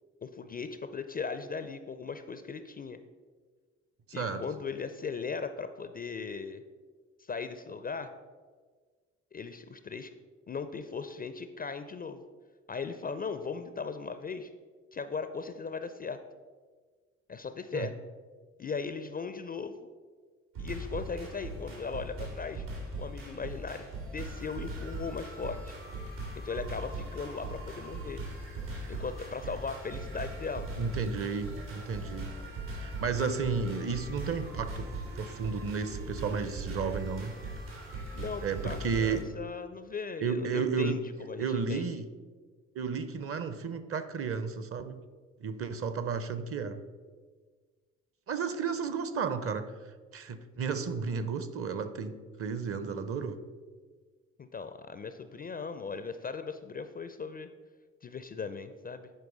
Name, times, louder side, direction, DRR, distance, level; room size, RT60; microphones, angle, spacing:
voice 1, 0.2-3.0 4.1-6.6 7.2-8.1 9.3-10.1 10.5-12.2 12.7-14.5 14.9-16.2 17.3-17.9 18.6-19.8 20.6-22.7 23.0-23.9 24.1-25.7 26.4-28.2 28.9-30.7 38.1-41.9 54.5-57.5 58.0-59.1, left 5 dB, 25° left, 10 dB, 0.4 m, -38 dB
sound 1, 20.5-39.2, right 2 dB, 80° right, 2.6 m, -40 dB
voice 2, 30.8-32.3 32.8-34.9 35.1-37.3 38.4-39.2 40.2-41.0 41.4-42.1 42.7-45.0 45.4-46.8 48.3-49.7 50.1-52.1 52.4-53.4, right 5 dB, 35° right, 11 dB, 0.7 m, -32 dB
11.0 x 4.7 x 3.9 m, 1.5 s
figure-of-eight pair, 45°, 39 cm